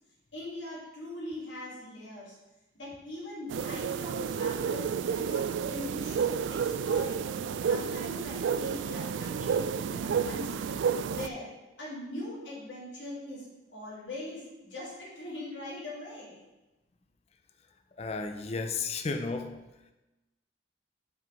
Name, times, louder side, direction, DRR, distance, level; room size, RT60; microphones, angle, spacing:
voice 1, 0.3-2.4 2.7-6.2 6.5-7.2 7.7-10.7 11.1-11.5 11.8-16.4, left 1 dB, 80° left, -5 dB, 2.5 m, -41 dB
sound 1, 3.5-11.3, right 6 dB, 75° right, 0.3 m, -31 dB
voice 2, 18.0-19.7, left 4 dB, 35° left, 7 dB, 0.4 m, -33 dB
5.5 x 5.4 x 5.2 m, 1.0 s
head